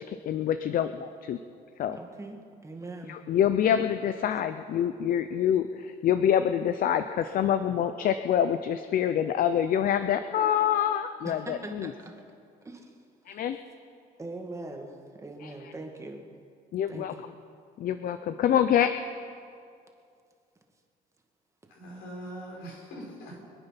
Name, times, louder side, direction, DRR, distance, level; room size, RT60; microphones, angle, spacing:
voice 1, 0.0-1.4 1.8-2.0 3.1-11.9 13.3-13.6 16.7-17.1 17.8-18.9, left 9 dB, 55° left, 10 dB, 0.6 m, -26 dB
voice 2, 1.9-3.2 3.7-3.8 11.2-12.2 12.6-13.0 13.3-13.5 14.2-16.2 16.9-17.2, right 2 dB, 15° right, 2 dB, 1.9 m, -41 dB
voice 3, 21.7-23.4, right 1 dB, 80° left, -2 dB, 5.2 m, -42 dB
25.0 x 9.0 x 5.8 m, 2.4 s
cardioid pair, 110°, 17 cm